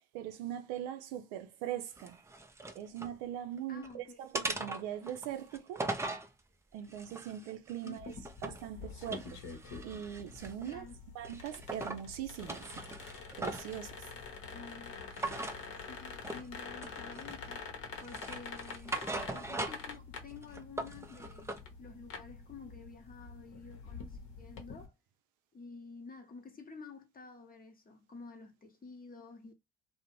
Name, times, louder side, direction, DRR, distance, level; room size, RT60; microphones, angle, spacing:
voice 1, 0.1-2.2 2.7-5.9 6.7-8.2 8.4-9.4 9.8-10.9 11.1-12.6 13.4-14.1, right 10 dB, 70° right, 0.5 m, -41 dB
sound 1, 2.0-3.2 3.6-3.9 4.3-6.3 6.9-8.7 9.0-10.8 11.2-12.0 12.4-13.8 15.1-15.6 16.2-16.5 16.8-17.5 18.0-20.0 20.3-21.6, right 2 dB, 10° right, 0.5 m, -40 dB
voice 2, 3.7-4.2 7.8-8.2 10.6-11.0 14.5-15.0 15.9-17.7 18.0-19.0 19.3-24.9 25.5-29.5, left 4 dB, 25° left, 0.8 m, -50 dB
sound 2, 8.0-24.9, left 5 dB, 60° left, 0.8 m, -47 dB
2.5 x 2.1 x 2.9 m
hypercardioid pair, 55°, 32 cm